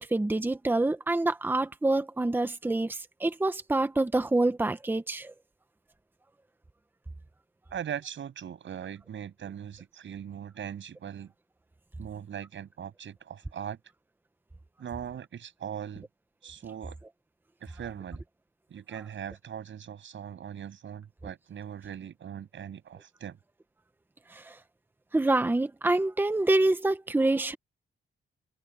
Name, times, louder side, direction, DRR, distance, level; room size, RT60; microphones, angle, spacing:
voice 1, 0.0-5.3 24.3-24.4 25.1-27.6, right 2 dB, 10° right, 1.0 m, -26 dB
voice 2, 7.7-11.3 12.0-13.8 14.8-16.1 16.4-17.0 17.6-18.2 18.7-23.4, right 9 dB, 65° right, 7.7 m, -40 dB
wide cardioid pair, 145°, 21 cm